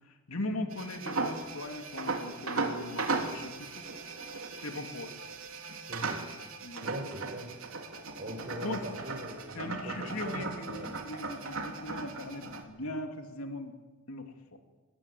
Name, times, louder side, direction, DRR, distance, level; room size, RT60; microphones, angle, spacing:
voice 1, 0.3-3.8 4.6-5.1 6.6-6.9 8.6-8.8 9.5-13.8 14.1-14.3, left 2 dB, 80° left, 5 dB, 3.0 m, -39 dB
sound 1, 0.7-12.6, right 3 dB, 75° right, 3.3 m, -37 dB
voice 2, 6.8-7.5 8.2-10.9, equal, 45° right, 0 dB, 4.4 m, -41 dB
24.0 x 21.0 x 9.3 m, 1.2 s
head